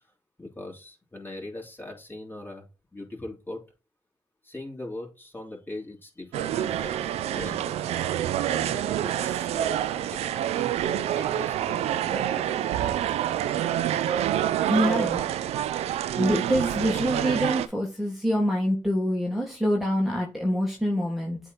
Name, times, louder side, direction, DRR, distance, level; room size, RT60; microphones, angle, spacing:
voice 1, 0.4-2.7 2.9-3.6 4.4-7.8 8.2-8.3 8.5-12.7, left 2 dB, 20° left, -1 dB, 3.2 m, -41 dB
sound 1, 6.3-17.7, right 11 dB, 85° right, 0.5 m, -27 dB
voice 2, 14.7-15.2 16.1-21.4, equal, ahead, -1 dB, 1.9 m, -25 dB
7.9 x 3.3 x 4.1 m, 0.31 s
supercardioid pair, 55°, 11 cm